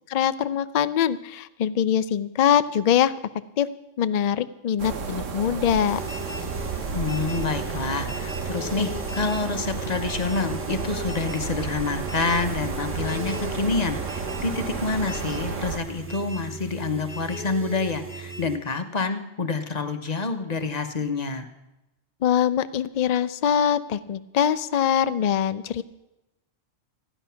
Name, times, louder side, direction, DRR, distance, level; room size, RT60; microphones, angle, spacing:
voice 1, 0.1-3.1 3.6-3.7 4.0-6.0 22.2-25.8, left 9 dB, 60° left, 14 dB, 0.4 m, -23 dB
sound 1, 4.8-15.8, right 5 dB, 85° right, 1.4 m, -32 dB
sound 2, 5.9-18.6, right 2 dB, 10° right, 1.0 m, -37 dB
voice 2, 6.9-21.5, left 4 dB, 35° left, 8 dB, 1.0 m, -28 dB
15.0 x 10.0 x 5.7 m, 0.96 s
omnidirectional pair, 1.3 m